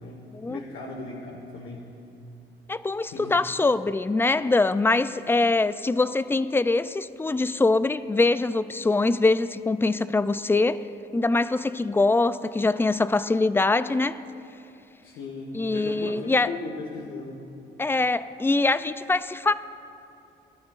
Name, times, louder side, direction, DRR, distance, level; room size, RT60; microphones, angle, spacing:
voice 1, 0.0-1.9 3.1-3.3 15.0-17.4, left 3 dB, 85° left, -3 dB, 1.6 m, -37 dB
voice 2, 2.7-10.8 11.1-14.2 15.5-16.5 17.8-19.5, left 3 dB, 10° left, 14 dB, 0.3 m, -23 dB
21.5 x 12.5 x 2.5 m, 2.7 s
cardioid pair, 90°, 20 cm